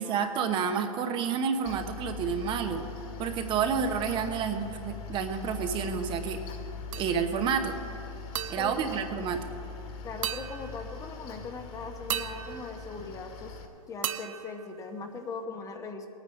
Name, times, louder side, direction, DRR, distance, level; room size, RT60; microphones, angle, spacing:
voice 1, 0.0-2.8 3.2-6.4 7.0-7.8 8.5-9.4, right 7 dB, 25° right, 6 dB, 0.9 m, -29 dB
Mechanical fan, 1.6-13.6, left 5 dB, 45° left, 2.1 m, -41 dB
sound 1, 6.9-7.5 8.3-9.8 10.2-11.2 12.1-13.6 14.0-15.4, right 10 dB, 65° right, 0.7 m, -38 dB
voice 2, 8.6-9.0 10.0-13.6 13.9-16.1, left 4 dB, 20° left, 5 dB, 0.9 m, -40 dB
19.0 x 9.1 x 5.3 m, 2.7 s
hypercardioid pair, 130°, 18 cm